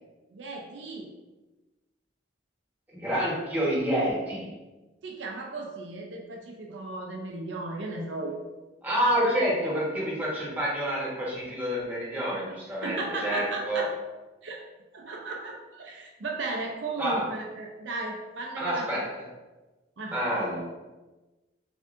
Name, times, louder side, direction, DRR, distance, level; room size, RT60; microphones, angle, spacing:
voice 1, 0.3-1.1 5.0-8.4 12.8-13.9 14.4-14.6 14.9-18.9 20.0-20.1, right 2 dB, 75° right, 0 dB, 0.6 m, -35 dB
voice 2, 2.9-4.5 8.8-13.9 17.0-17.3 18.6-19.2 20.1-20.6, equal, 10° right, -7 dB, 1.4 m, -28 dB
6.8 x 2.7 x 2.6 m, 1.1 s
head